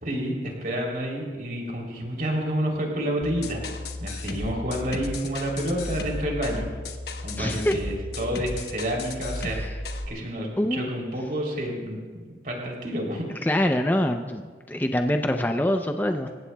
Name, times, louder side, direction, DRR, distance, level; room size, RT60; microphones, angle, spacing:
voice 1, 0.0-3.6 4.0-6.7 7.2-9.8 10.1-13.5, equal, 50° right, -1 dB, 3.2 m, -29 dB
sound 1, 3.2-10.1, left 2 dB, 65° left, 1.1 m, -34 dB
voice 2, 7.4-7.7 9.5-9.7 10.6-10.9 13.4-16.3, left 1 dB, 10° left, 5 dB, 0.5 m, -25 dB
27.0 x 15.5 x 2.3 m, 1.5 s
head